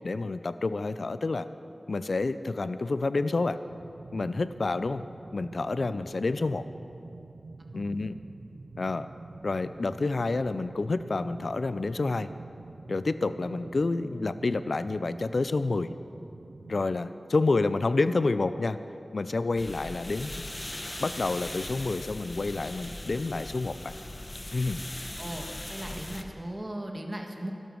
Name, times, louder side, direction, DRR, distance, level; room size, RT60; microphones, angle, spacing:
voice 1, 0.0-1.5 1.9-3.6 4.1-5.0 5.3-6.6 7.7-8.2 8.8-9.1 9.4-12.3 12.9-15.9 16.7-18.8 19.1-20.4 21.0-23.9 24.5-24.8, left 3 dB, 75° left, 13 dB, 0.4 m, -29 dB
sound 1, 3.6-17.1, right 3 dB, 90° right, 0.6 m, -46 dB
sound 2, 19.6-26.2, left 1 dB, 35° left, 1.0 m, -39 dB
voice 2, 25.2-27.5, right 1 dB, 35° right, 2 dB, 1.7 m, -37 dB
12.5 x 12.0 x 6.3 m, 2.7 s
wide cardioid pair, 45°, 0 cm